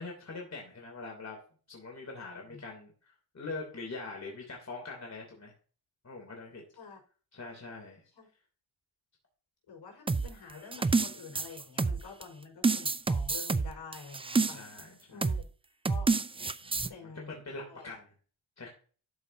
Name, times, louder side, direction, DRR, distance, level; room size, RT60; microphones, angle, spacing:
voice 1, 0.0-1.4 1.7-5.5 6.0-6.6 7.3-8.0 14.5-15.3 16.6-18.1 18.6-18.7, left 3 dB, 35° left, -1 dB, 3.0 m, -43 dB
voice 2, 9.7-14.6 15.1-15.5 15.9-16.1 16.9-17.3 17.7-17.9, left 5 dB, 65° left, 1 dB, 4.9 m, -48 dB
sound 1, 10.1-12.2 12.6-14.8 15.2-15.5 15.8-16.9, right 4 dB, 15° right, 0.3 m, -28 dB
12.5 x 5.5 x 2.7 m, 0.39 s
cardioid pair, 80°, 48 cm